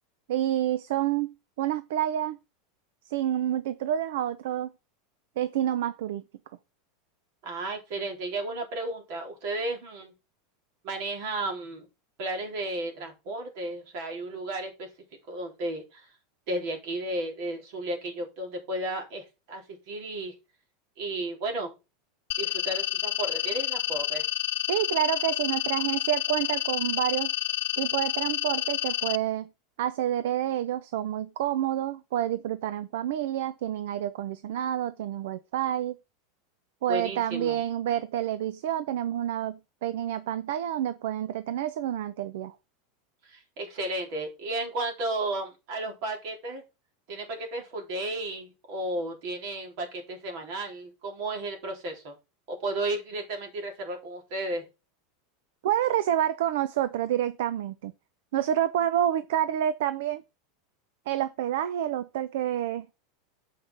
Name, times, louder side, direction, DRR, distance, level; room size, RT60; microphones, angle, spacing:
voice 1, 0.3-2.4 3.1-4.7 5.4-6.2 24.7-27.3 27.8-29.5 29.8-36.0 36.8-42.5 55.6-57.9 58.3-60.2 61.1-62.9, right 11 dB, 75° right, 0.6 m, -28 dB
voice 2, 7.4-10.1 10.8-11.9 12.2-14.9 15.3-16.1 16.5-20.3 21.0-21.7 22.4-24.2 36.9-37.6 43.2-46.6 47.1-52.2 52.5-54.7, right 2 dB, 55° right, 3.7 m, -33 dB
sound 1, 22.3-29.2, left 16 dB, 80° left, 0.4 m, -29 dB
7.5 x 5.8 x 4.0 m
supercardioid pair, 155°, 0 cm